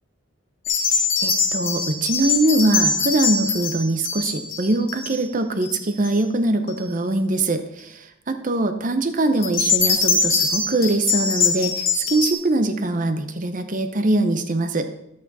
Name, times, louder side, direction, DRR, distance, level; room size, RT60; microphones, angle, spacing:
sound 1, 0.7-5.2 5.6-6.1 6.7-6.8 9.4-12.3, left 5 dB, 65° left, 2.1 m, -23 dB
voice 1, 0.9-14.9, right 2 dB, 40° right, 8 dB, 0.8 m, -22 dB
11.0 x 8.4 x 4.1 m, 0.81 s
head